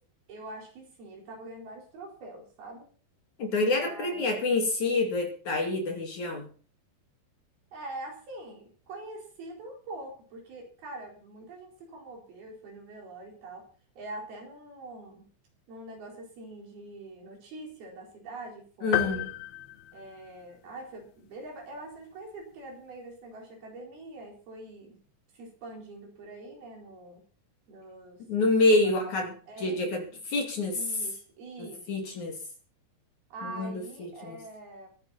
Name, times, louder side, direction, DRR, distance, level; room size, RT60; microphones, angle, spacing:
voice 1, 0.3-2.9 3.6-4.7 7.7-13.7 14.0-15.3 15.7-19.3 19.9-25.0 25.3-27.2 27.7-28.2 28.5-30.2 30.7-32.0 33.3-34.9, right 2 dB, 60° right, 0 dB, 6.3 m, -44 dB
voice 2, 3.4-6.5 18.8-19.2 28.3-29.3 29.6-30.8 31.6-32.4 33.4-34.4, left 2 dB, 50° left, 2 dB, 3.5 m, -27 dB
sound 1, 18.9-20.7, left 13 dB, 80° left, 3.1 m, -32 dB
22.5 x 10.5 x 4.3 m, 0.42 s
omnidirectional pair, 4.9 m